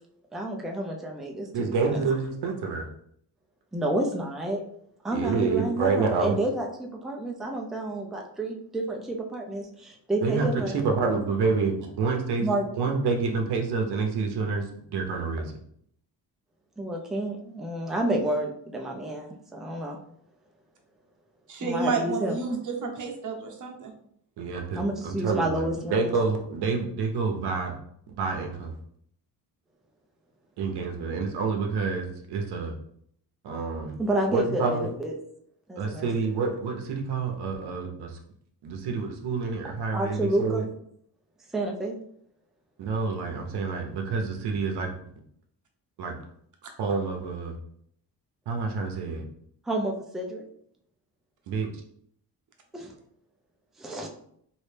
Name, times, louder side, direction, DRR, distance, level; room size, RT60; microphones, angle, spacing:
voice 1, 0.3-2.0 3.7-4.6 5.0-11.2 12.4-12.7 16.8-20.0 21.6-22.4 24.7-26.1 34.0-35.1 35.7-36.1 39.9-40.6 41.5-42.0 49.7-50.4 52.7-52.9 53.8-54.1, right 1 dB, ahead, 0 dB, 0.5 m, -30 dB
voice 2, 1.5-2.9 5.1-6.3 10.2-10.5 10.8-12.5 12.8-15.5 24.4-27.8 28.2-28.7 30.6-32.7 33.4-34.0 34.3-34.9 35.8-38.2 38.6-40.7 42.8-44.9 46.0-46.1 46.8-47.6 48.5-49.2 51.5-51.7, right 4 dB, 80° right, 2 dB, 0.7 m, -28 dB
voice 3, 21.5-23.9, right 4 dB, 50° right, 2 dB, 0.9 m, -30 dB
3.1 x 2.7 x 3.3 m, 0.68 s
cardioid pair, 90°, 39 cm